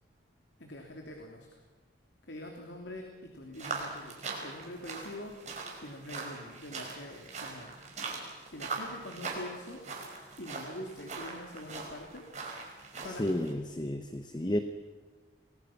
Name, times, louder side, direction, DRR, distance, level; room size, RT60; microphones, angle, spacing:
voice 1, 0.6-1.6 2.3-7.7 8.4-9.8 10.4-12.3 13.0-13.5, left 1 dB, 80° left, 2 dB, 3.1 m, -45 dB
sound 1, 3.5-13.5, right 4 dB, 40° right, 5.3 m, -41 dB
voice 2, 13.2-14.6, left 1 dB, 25° left, 8 dB, 1.0 m, -31 dB
28.5 x 21.0 x 6.0 m, 1.3 s
head